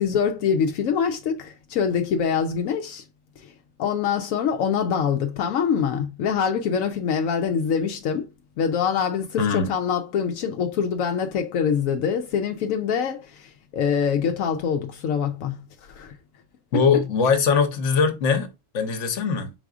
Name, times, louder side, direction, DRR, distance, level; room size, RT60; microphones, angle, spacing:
voice 1, 0.0-3.0 3.4-3.5 3.8-8.3 8.6-15.6 15.9-16.1, left 7 dB, 85° left, 1.0 m, -24 dB
voice 2, 9.4-9.7 16.7-19.5, left 5 dB, 70° left, 1.2 m, -21 dB
4.8 x 4.0 x 2.4 m
omnidirectional pair, 1.4 m